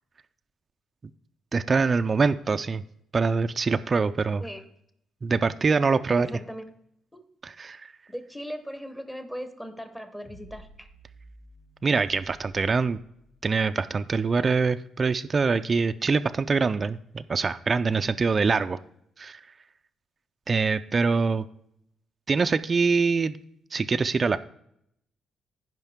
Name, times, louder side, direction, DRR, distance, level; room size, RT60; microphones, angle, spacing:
voice 1, 1.5-2.8 3.1-4.4 5.2-6.3 7.4-7.9 11.8-13.0 13.4-18.8 19.2-19.4 20.5-21.4 22.3-23.4 23.7-24.4, right 4 dB, 30° right, 10 dB, 0.4 m, -24 dB
voice 2, 6.1-6.6 7.1-7.2 8.1-10.9, equal, 5° left, 8 dB, 1.1 m, -38 dB
sound 1, 10.2-13.6, equal, 40° left, 4.2 m, -52 dB
15.5 x 5.2 x 3.6 m, 0.74 s
cardioid pair, 110°, 0 cm